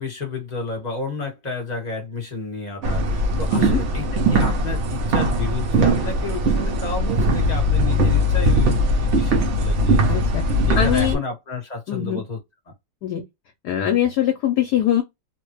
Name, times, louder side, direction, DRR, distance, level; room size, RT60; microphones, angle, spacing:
voice 1, 0.0-10.2 10.6-12.4, left 3 dB, 25° left, 1.4 m, -31 dB
sound 1, 2.8-11.1, equal, 80° right, 0.6 m, -20 dB
voice 2, 10.1-10.4 10.8-11.2 11.9-12.2 13.0-13.2 13.6-15.0, left 10 dB, 70° left, 1.0 m, -22 dB
3.1 x 2.2 x 3.0 m
omnidirectional pair, 2.1 m